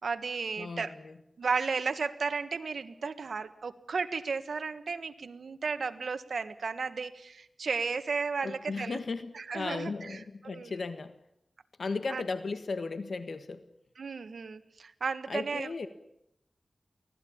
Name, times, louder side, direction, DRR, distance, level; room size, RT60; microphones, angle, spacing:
voice 1, 0.0-0.9 1.4-9.0 9.3-10.7 12.1-12.2 14.0-15.7, right 5 dB, 90° right, 11 dB, 1.5 m, -34 dB
voice 2, 0.6-1.1 8.4-11.1 11.8-13.6 15.3-15.9, left 4 dB, 75° left, 11 dB, 1.5 m, -36 dB
25.0 x 17.5 x 8.7 m, 0.79 s
wide cardioid pair, 95°, 0 cm